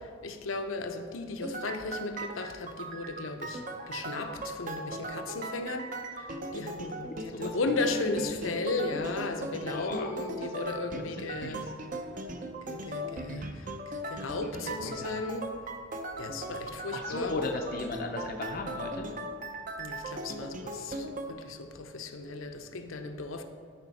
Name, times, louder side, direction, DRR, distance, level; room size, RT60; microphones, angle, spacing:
voice 1, 0.2-3.6 3.9-5.9 6.5-11.6 12.7-13.7 14.1-15.5 16.2-17.4 19.8-23.4, left 3 dB, 80° left, 0.7 m, -35 dB
sound 1, 1.4-21.3, right 1 dB, 40° right, 0.6 m, -39 dB
voice 2, 7.3-7.6 9.7-10.1 10.5-10.6 11.5-11.7 14.7-15.2 16.9-19.1, left 3 dB, 45° left, 0.5 m, -36 dB
13.5 x 5.0 x 4.1 m
head